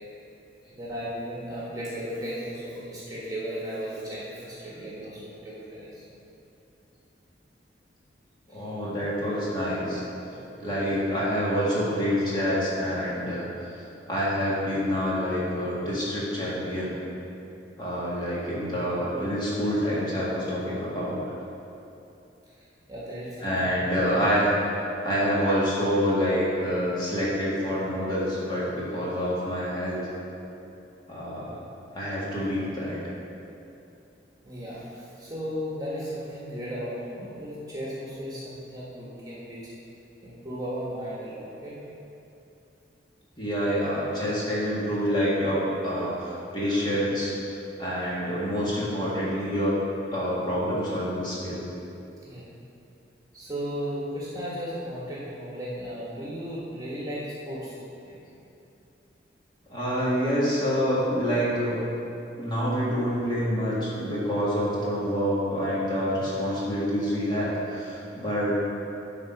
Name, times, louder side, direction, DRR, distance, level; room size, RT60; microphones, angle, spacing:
voice 1, 0.7-6.0 8.5-8.6 10.3-10.4 22.9-23.7 34.4-39.7 40.2-41.8 52.2-52.5 53.3-57.7, equal, 20° right, -7 dB, 1.5 m, -35 dB
voice 2, 8.5-10.0 10.6-13.5 14.1-17.0 17.8-21.2 23.4-24.5 25.0-30.0 31.1-31.6 31.9-33.0 43.4-49.8 50.1-51.6 58.0-58.2 59.7-61.8 62.4-68.6, equal, 25° left, -7 dB, 1.9 m, -27 dB
10.5 x 3.9 x 5.8 m, 2.8 s
head